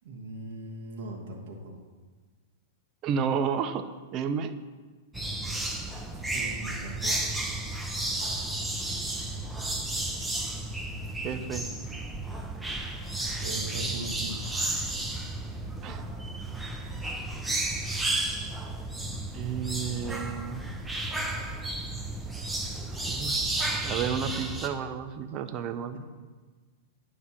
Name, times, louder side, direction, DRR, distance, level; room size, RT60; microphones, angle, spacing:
voice 1, 0.0-1.7 6.3-7.3 13.4-14.5, right 1 dB, 60° right, -1 dB, 1.3 m, -39 dB
voice 2, 3.0-4.6 11.2-11.7 15.8-16.0 19.3-20.7 23.0-26.0, right 7 dB, 40° right, 9 dB, 0.5 m, -32 dB
sound 1, 5.1-24.7, right 2 dB, 5° right, 0.7 m, -33 dB
9.4 x 3.4 x 5.8 m, 1.4 s
hypercardioid pair, 105°, 0 cm